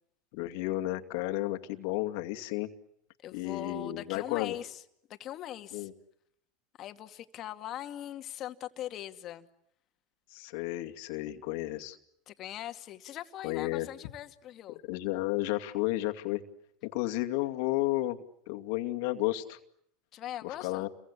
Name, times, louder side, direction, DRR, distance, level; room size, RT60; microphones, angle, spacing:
voice 1, 0.3-2.7 3.3-4.6 5.7-5.9 10.3-12.0 13.4-13.9 14.8-16.4 16.8-18.2 18.5-19.6 20.4-20.9, left 17 dB, 65° left, 2.4 m, -32 dB
voice 2, 3.2-4.8 5.1-5.9 6.8-9.5 12.3-14.8 20.1-20.9, left 12 dB, 45° left, 2.2 m, -41 dB
29.5 x 23.5 x 8.4 m
hypercardioid pair, 105°, 0 cm